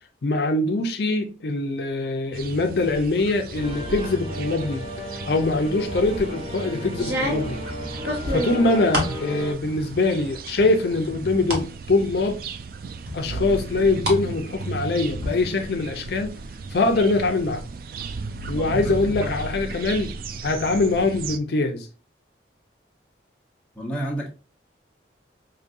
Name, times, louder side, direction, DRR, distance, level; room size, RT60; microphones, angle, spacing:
voice 1, 0.2-4.8 5.3-7.6 8.3-12.4 13.1-16.4 16.7-17.6 18.5-20.1 20.4-21.9, left 2 dB, 65° left, 0.5 m, -23 dB
sound 1, 2.3-21.4, right 4 dB, 50° right, 0.3 m, -36 dB
sound 2, 3.5-9.5, left 1 dB, 35° right, 0.9 m, -34 dB
sound 3, 5.9-6.3 6.9-9.2 9.6-10.2 10.6-11.7 12.1-12.2 13.1-14.2 14.5-15.3, equal, 70° right, 1.3 m, -29 dB
voice 2, 18.5-19.3 23.8-24.3, right 1 dB, 5° left, 0.9 m, -31 dB
5.0 x 2.6 x 2.5 m
head